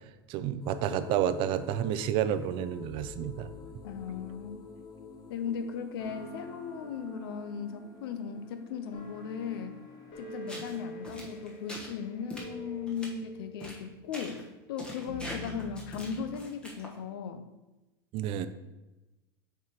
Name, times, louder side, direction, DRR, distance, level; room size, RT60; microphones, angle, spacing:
voice 1, 0.3-3.5 18.1-18.5, right 10 dB, 45° right, 13 dB, 0.4 m, -30 dB
sound 1, 0.6-12.8, left 5 dB, 30° left, 0.7 m, -49 dB
sound 2, 2.8-5.4 6.0-16.4, left 1 dB, 50° left, 1.5 m, -48 dB
voice 2, 3.8-4.6 5.3-9.7 10.2-14.4 14.7-17.4, left 6 dB, 85° left, 9 dB, 0.6 m, -37 dB
sound 3, 10.5-10.8 11.0-11.9 12.3-12.5 12.9-13.1 13.6-13.8 14.1-14.4 14.8-17.0, equal, 10° left, 1.1 m, -43 dB
7.1 x 4.7 x 2.9 m, 1.1 s
supercardioid pair, 135°, 12 cm